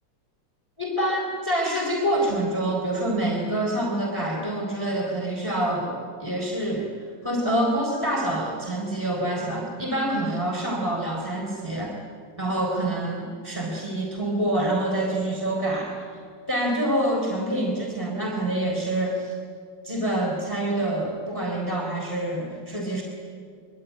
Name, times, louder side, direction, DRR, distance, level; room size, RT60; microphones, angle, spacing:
voice 1, 0.8-11.9 12.4-15.9 16.5-19.4 19.8-23.0, right 1 dB, 10° left, -1 dB, 3.8 m, -26 dB
25.0 x 23.5 x 9.6 m, 2.2 s
omnidirectional pair, 2.3 m